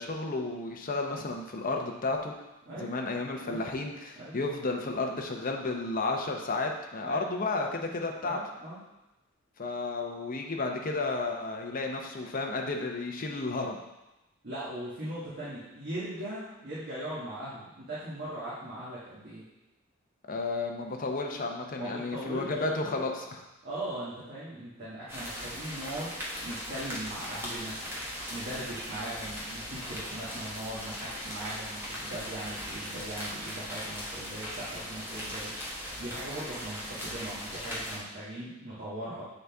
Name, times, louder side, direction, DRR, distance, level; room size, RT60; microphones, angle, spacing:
voice 1, 0.0-2.3 2.7-8.4 9.6-13.8 20.3-23.4, left 3 dB, 40° left, 2 dB, 0.7 m, -32 dB
voice 2, 2.7-3.0 3.4-3.6 4.2-4.4 7.0-7.2 8.2-8.8 14.4-19.4 21.8-22.6 23.6-27.8 28.3-35.5 36.0-39.3, right 1 dB, 50° right, -9 dB, 1.4 m, -39 dB
sound 1, 25.1-38.0, equal, 10° right, 1.0 m, -39 dB
7.7 x 4.0 x 3.5 m, 0.97 s
head